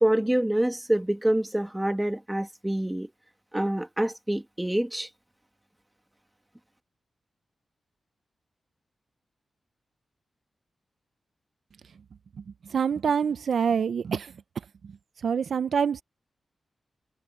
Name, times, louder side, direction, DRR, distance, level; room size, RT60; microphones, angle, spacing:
voice 1, 0.0-3.1 3.5-5.1, right 1 dB, 5° right, 1.7 m, -26 dB
voice 2, 12.7-14.3 14.8-14.9 15.2-16.0, right 7 dB, 70° right, 0.4 m, -26 dB
wide cardioid pair, 165°, 0 cm